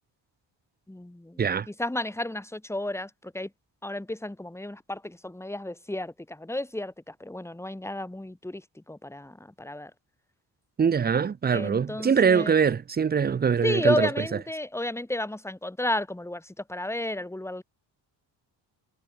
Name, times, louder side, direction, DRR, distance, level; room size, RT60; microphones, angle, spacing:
voice 1, 0.9-3.5 3.8-9.9 11.5-12.5 13.6-17.6, left 1 dB, 5° left, 2.4 m, -32 dB
voice 2, 10.8-14.1, right 6 dB, 25° right, 0.4 m, -23 dB
cardioid pair, 120°, 44 cm